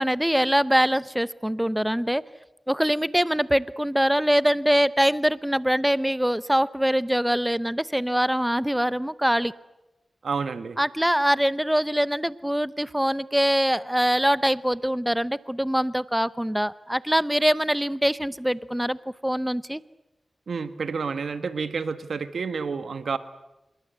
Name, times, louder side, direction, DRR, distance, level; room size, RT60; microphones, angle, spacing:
voice 1, 0.0-2.2 2.7-9.5 10.8-19.8, equal, 5° right, 17 dB, 0.9 m, -23 dB
voice 2, 10.2-10.8 20.5-23.2, right 5 dB, 80° right, 12 dB, 1.5 m, -29 dB
26.0 x 22.0 x 8.2 m, 0.96 s
cardioid pair, 45°, 0 cm